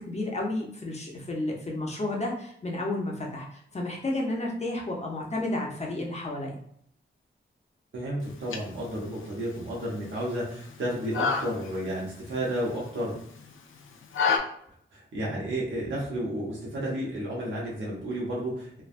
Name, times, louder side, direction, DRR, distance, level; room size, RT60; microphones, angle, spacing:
voice 1, 0.0-6.5, left 2 dB, 35° left, -1 dB, 0.6 m, -32 dB
voice 2, 7.9-13.1 14.9-18.8, right 1 dB, 75° right, -5 dB, 0.9 m, -32 dB
sound 1, 8.2-14.4, left 5 dB, 85° left, 0.4 m, -33 dB
3.2 x 2.1 x 2.4 m, 0.67 s
wide cardioid pair, 120°, 20 cm